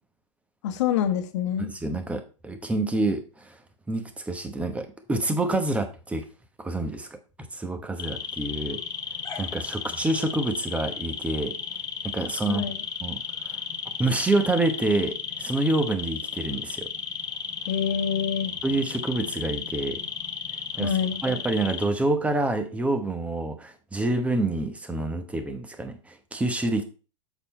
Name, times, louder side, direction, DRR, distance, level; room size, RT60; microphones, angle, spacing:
voice 1, 0.6-1.7 12.5-12.8 17.7-18.5 20.8-21.2, left 8 dB, 65° left, 1.1 m, -26 dB
voice 2, 1.6-3.6 3.9-6.2 6.6-7.1 7.5-8.8 9.4-11.5 12.0-12.7 13.0-13.6 14.0-16.9 18.6-20.0 20.8-20.9 21.2-26.8, right 2 dB, 10° right, 1.0 m, -27 dB
sound 1, 8.0-21.9, left 7 dB, 25° left, 0.9 m, -34 dB
7.2 x 4.1 x 4.3 m
hypercardioid pair, 130°, 16 cm